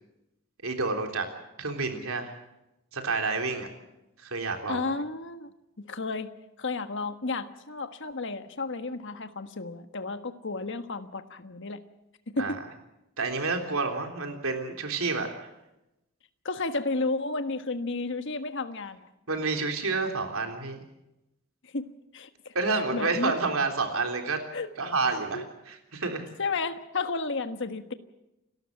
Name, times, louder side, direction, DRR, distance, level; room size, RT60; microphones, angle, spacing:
voice 1, 0.6-1.3 1.6-2.3 2.9-3.7 4.2-4.9 12.4-12.6 13.2-15.5 19.3-20.8 22.5-24.4 24.8-26.3, right 3 dB, 75° right, 4 dB, 3.6 m, -29 dB
voice 2, 4.7-5.5 5.8-6.3 6.6-11.8 12.3-12.6 16.4-19.1 21.6-22.5 22.9-23.3 24.5-24.9 25.3-25.4 26.4-27.9, left 3 dB, 55° left, 9 dB, 1.4 m, -32 dB
30.0 x 13.0 x 7.8 m, 0.91 s
head